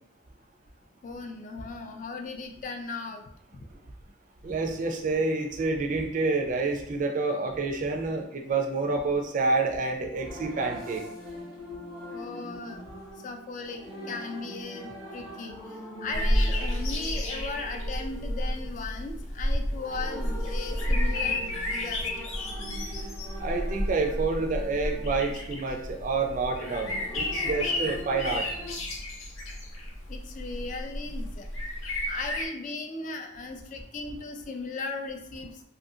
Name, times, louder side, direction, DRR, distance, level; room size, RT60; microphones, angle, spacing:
voice 1, 1.0-3.2 3.5-3.6 12.1-12.8 13.2-22.3 30.1-31.7 32.1-35.6, left 3 dB, 40° left, 5 dB, 0.3 m, -37 dB
voice 2, 4.4-11.0 23.4-28.5, right 3 dB, 40° right, 3 dB, 0.4 m, -28 dB
sound 1, 9.7-28.7, equal, 15° left, 0.8 m, -43 dB
sound 2, 16.1-32.5, left 1 dB, 80° left, 0.6 m, -31 dB
2.6 x 2.5 x 2.7 m, 0.69 s
head